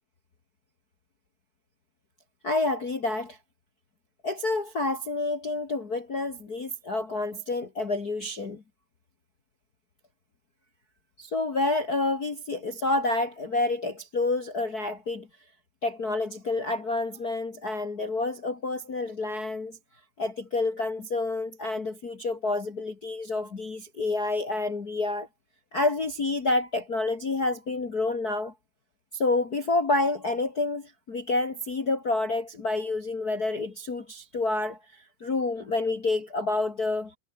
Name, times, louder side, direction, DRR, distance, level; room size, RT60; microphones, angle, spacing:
voice 1, 2.4-3.4 4.2-8.6 11.2-15.3 15.8-19.8 20.2-25.3 25.7-28.5 29.1-37.1, left 2 dB, 90° left, 0.8 m, -28 dB
omnidirectional pair, 5.3 m